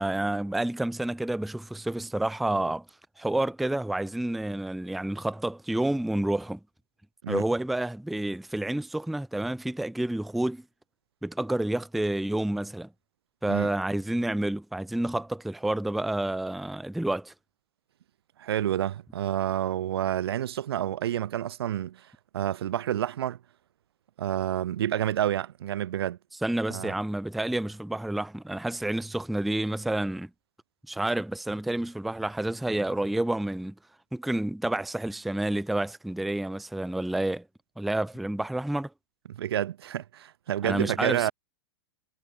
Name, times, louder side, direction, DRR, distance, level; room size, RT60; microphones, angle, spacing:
voice 1, 0.0-2.8 3.2-6.6 7.3-10.6 11.2-12.9 13.4-17.3 26.4-30.3 30.9-33.7 34.1-37.4 37.8-38.9 40.6-41.3, right 1 dB, ahead, 0.3 m, -29 dB
voice 2, 18.4-23.4 24.2-26.2 26.7-26.9 39.3-41.3, right 11 dB, 90° right, 0.9 m, -29 dB
supercardioid pair, 160°, 13 cm